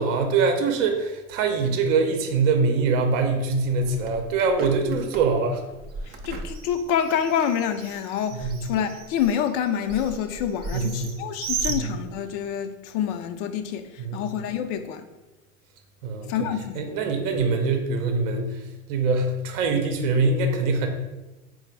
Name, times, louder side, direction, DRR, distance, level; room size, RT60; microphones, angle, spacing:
voice 1, 0.0-5.6 8.3-8.6 10.7-11.2 11.7-11.9 14.0-14.2 16.0-16.3 16.8-20.9, right 4 dB, 65° right, 5 dB, 0.7 m, -23 dB
Bird, 3.6-12.5, right 4 dB, 25° right, 0.4 m, -37 dB
voice 2, 6.1-15.1 16.3-17.0, left 8 dB, 55° left, 8 dB, 0.5 m, -27 dB
4.0 x 2.1 x 4.5 m, 1.1 s
hypercardioid pair, 95°, 41 cm